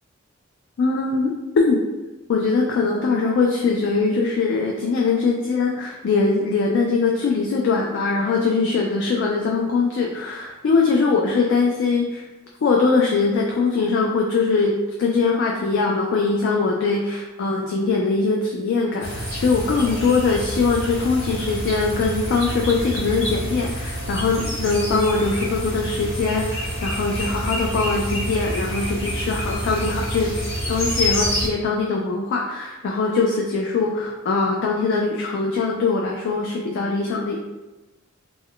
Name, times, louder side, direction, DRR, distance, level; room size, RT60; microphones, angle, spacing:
voice 1, 0.8-1.8 2.3-12.2 12.6-30.3 30.7-37.4, left 4 dB, 60° left, 0 dB, 0.3 m, -22 dB
sound 1, 19.0-31.5, equal, 80° left, 1.2 m, -28 dB
2.2 x 2.1 x 3.6 m, 1.1 s
head